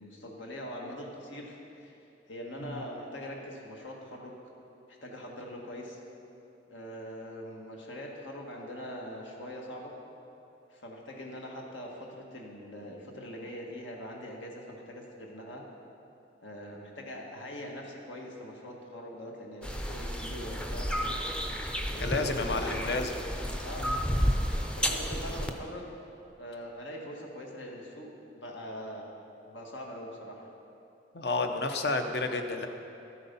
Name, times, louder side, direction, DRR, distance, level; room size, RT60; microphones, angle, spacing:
voice 1, 0.0-1.9 2.3-4.4 4.9-6.0 6.7-9.9 10.7-15.6 16.4-20.9 21.9-23.9 24.7-26.0 26.4-28.1 28.4-29.1 29.5-30.4, equal, 85° left, -1 dB, 1.8 m, -42 dB
sound 1, 19.6-25.5, equal, 5° left, 0.5 m, -31 dB
voice 2, 22.0-23.1 23.8-23.9 31.1-32.7, left 3 dB, 60° left, 6 dB, 0.8 m, -30 dB
13.0 x 8.3 x 5.5 m, 2.9 s
head